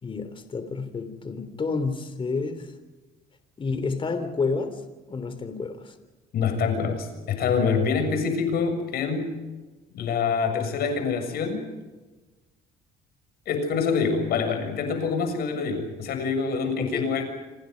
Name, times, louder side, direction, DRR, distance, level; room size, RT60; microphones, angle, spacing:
voice 1, 0.0-2.7 3.6-5.9 16.8-17.0, left 4 dB, 30° left, 10 dB, 3.5 m, -30 dB
voice 2, 6.3-9.3 9.9-11.7 13.5-17.2, left 5 dB, 65° left, 7 dB, 7.1 m, -26 dB
28.5 x 26.0 x 5.3 m, 1.2 s
cardioid pair, 110°, 17 cm